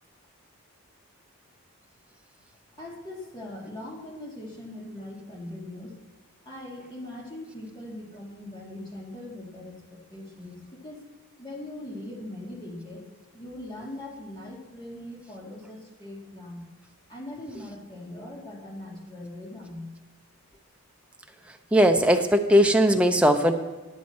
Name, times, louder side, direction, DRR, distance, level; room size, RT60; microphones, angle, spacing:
voice 1, 2.8-6.0 6.4-11.1 11.4-13.0 13.3-16.6 17.1-19.9, left 1 dB, 20° left, -3 dB, 1.9 m, -40 dB
voice 2, 21.7-23.5, equal, 5° right, 5 dB, 0.5 m, -19 dB
10.5 x 9.5 x 4.2 m, 1.3 s
head